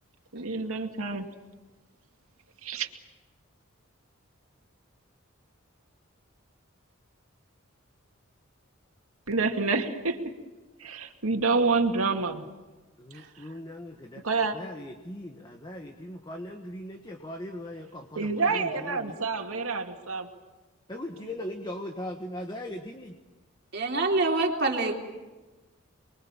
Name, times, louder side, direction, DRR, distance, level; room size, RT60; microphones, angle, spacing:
voice 1, 0.3-1.3 2.6-2.9 9.3-10.2 10.8-12.4 14.2-14.6 18.2-20.3, right 4 dB, 80° right, 4 dB, 2.4 m, -27 dB
voice 2, 13.0-14.2 14.5-19.2 20.9-23.2, left 1 dB, 20° left, 3 dB, 1.5 m, -39 dB
voice 3, 23.7-24.9, right 2 dB, 50° right, 1 dB, 3.7 m, -25 dB
29.5 x 23.0 x 7.4 m, 1.2 s
head